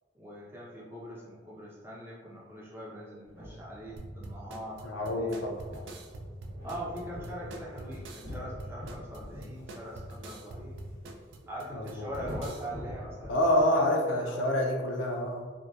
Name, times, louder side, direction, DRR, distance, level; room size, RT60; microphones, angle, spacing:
voice 1, 0.1-5.5 6.6-10.8 11.5-14.5, equal, 10° right, -6 dB, 0.5 m, -42 dB
sound 1, 3.2-13.6, equal, 50° right, 0.8 m, -45 dB
sound 2, 4.0-12.7, right 1 dB, 70° right, 0.3 m, -45 dB
voice 2, 4.8-5.6 11.7-12.1 13.3-15.5, left 1 dB, 80° left, 1 dB, 0.4 m, -27 dB
2.7 x 2.2 x 2.2 m, 1.4 s
head